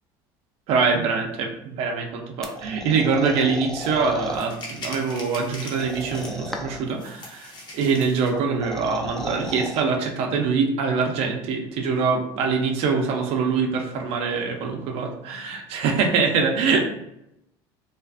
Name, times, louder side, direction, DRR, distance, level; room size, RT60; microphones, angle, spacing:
voice 1, 0.7-16.9, right 5 dB, 65° right, 3 dB, 0.5 m, -24 dB
sound 1, 2.4-4.4 5.7-6.9 8.4-9.8, left 1 dB, 5° left, 0.3 m, -35 dB
sound 2, 3.8-3.9 4.3-6.6 7.0-8.4, left 1 dB, 40° left, 0.8 m, -40 dB
2.4 x 2.3 x 2.4 m, 0.82 s
supercardioid pair, 100°, 11 cm